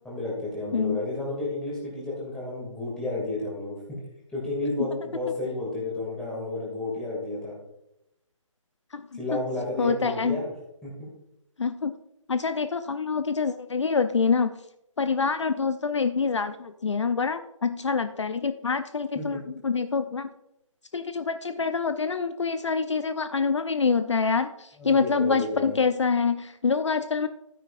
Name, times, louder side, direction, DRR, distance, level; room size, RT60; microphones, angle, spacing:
voice 1, 0.0-4.0 4.3-7.6 9.1-10.5 10.8-11.1 19.1-19.4 24.8-25.8, left 2 dB, 5° left, -5 dB, 2.3 m, -32 dB
voice 2, 8.9-9.4 9.8-10.4 11.6-11.9 12.3-14.6 15.0-20.3 20.9-27.3, left 5 dB, 60° left, 10 dB, 0.6 m, -26 dB
12.5 x 9.6 x 2.5 m, 0.85 s
figure-of-eight pair, 150°, 17 cm